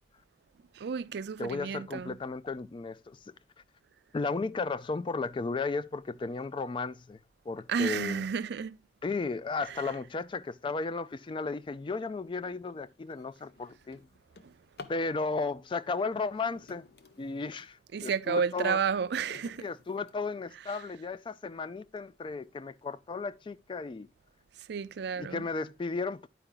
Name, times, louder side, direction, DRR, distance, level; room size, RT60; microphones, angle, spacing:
voice 1, 0.7-2.2 7.7-8.8 9.6-9.9 14.4-14.5 17.9-19.7 20.7-20.8 24.6-25.5, right 6 dB, 65° right, 0.4 m, -32 dB
voice 2, 1.4-3.2 4.1-7.2 7.5-8.2 9.0-14.0 14.9-16.8 17.2-18.8 19.6-24.1 25.2-26.3, left 4 dB, 30° left, 0.3 m, -34 dB
Drawer open or close, 12.6-12.7 13.1-15.1 16.2-17.8 18.3-20.7 21.4-21.5 22.0-22.1 22.4-22.8, left 4 dB, 65° left, 0.7 m, -53 dB
9.9 x 4.5 x 3.8 m
head